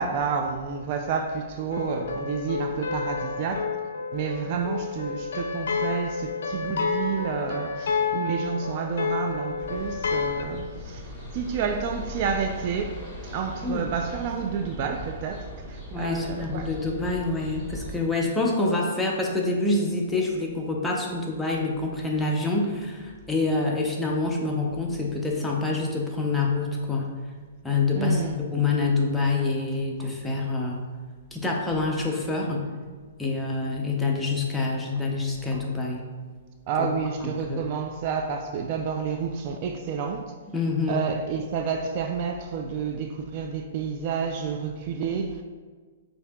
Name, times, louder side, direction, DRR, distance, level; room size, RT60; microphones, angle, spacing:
voice 1, 0.0-3.7 4.1-11.0 11.3-13.0 13.2-16.7 27.9-28.4 30.0-30.1 35.5-35.6 36.7-40.2 40.9-45.4, right 6 dB, 45° right, 0.3 m, -30 dB
sound 1, 1.7-10.4, left 5 dB, 75° left, 0.4 m, -30 dB
sound 2, 9.6-17.9, left 1 dB, 10° right, 1.3 m, -39 dB
voice 2, 15.9-27.1 27.6-28.2 28.5-30.8 31.3-32.7 33.2-36.0 36.8-36.9 37.2-37.6 40.5-41.1, left 3 dB, 5° left, 0.6 m, -26 dB
6.6 x 2.7 x 2.2 m
hypercardioid pair, 135°, 0 cm